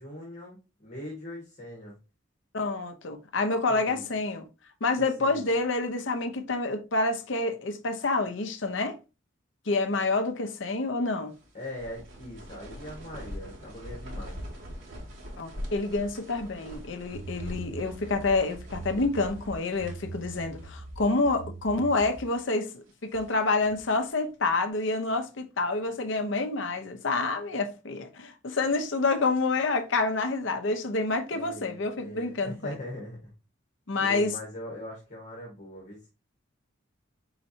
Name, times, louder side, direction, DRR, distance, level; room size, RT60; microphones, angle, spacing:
voice 1, 0.0-2.0 3.7-4.0 5.2-5.5 11.5-14.4 31.3-33.3 34.0-36.1, left 1 dB, 40° left, 1.5 m, -41 dB
voice 2, 2.5-4.5 4.8-9.0 9.7-11.3 15.4-32.7 33.9-34.3, left 3 dB, 65° left, 0.7 m, -28 dB
sound 1, 11.3-20.8 21.1-21.2 21.8-22.3 22.9-24.0, equal, 75° right, 2.1 m, -43 dB
sound 2, 17.1-22.3, right 3 dB, 60° right, 0.9 m, -42 dB
4.4 x 4.0 x 2.7 m
head